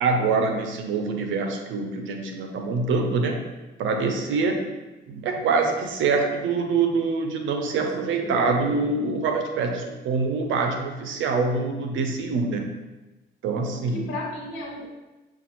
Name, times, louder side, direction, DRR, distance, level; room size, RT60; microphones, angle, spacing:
voice 1, 0.0-3.4 3.8-4.6 5.1-12.7 13.4-14.1, right 4 dB, 80° right, 3 dB, 0.7 m, -25 dB
voice 2, 8.0-8.5 13.9-14.9, left 1 dB, 85° left, -1 dB, 1.3 m, -35 dB
7.1 x 2.5 x 2.9 m, 1.1 s
cardioid pair, 90°, 20 cm